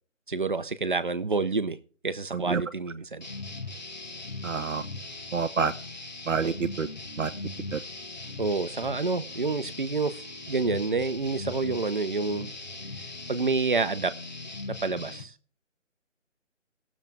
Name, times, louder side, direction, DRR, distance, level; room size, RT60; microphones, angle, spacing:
voice 1, 0.3-1.8 2.0-3.3 6.4-6.5 8.4-10.2 10.5-12.5 13.3-14.1 14.7-15.3, right 3 dB, 40° right, 0.8 m, -28 dB
sound 1, 3.2-15.2, left 2 dB, 35° left, 1.0 m, -39 dB
voice 2, 4.4-4.8 5.3-5.7 6.3-6.9 7.2-7.3 7.7-7.8, right 5 dB, 75° right, 1.0 m, -27 dB
18.0 x 7.3 x 3.5 m
hypercardioid pair, 180°, 38 cm